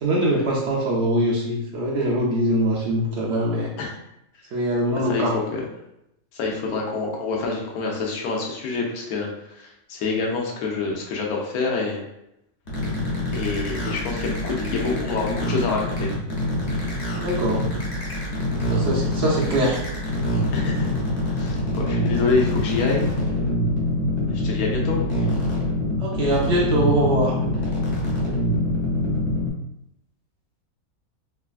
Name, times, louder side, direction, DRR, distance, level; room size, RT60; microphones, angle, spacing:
voice 1, 0.0-3.7 4.5-5.3 17.2-17.7 18.7-19.8 26.0-27.4, right 1 dB, 65° right, -3 dB, 0.7 m, -22 dB
voice 2, 4.9-5.6 6.3-12.0 13.3-16.1 20.5-21.0 21.3-23.1 24.3-25.0, left 4 dB, 80° left, -1 dB, 1.1 m, -27 dB
sound 1, 12.7-29.5, left 1 dB, 55° left, 0.9 m, -25 dB
3.2 x 2.2 x 2.3 m, 0.82 s
omnidirectional pair, 1.5 m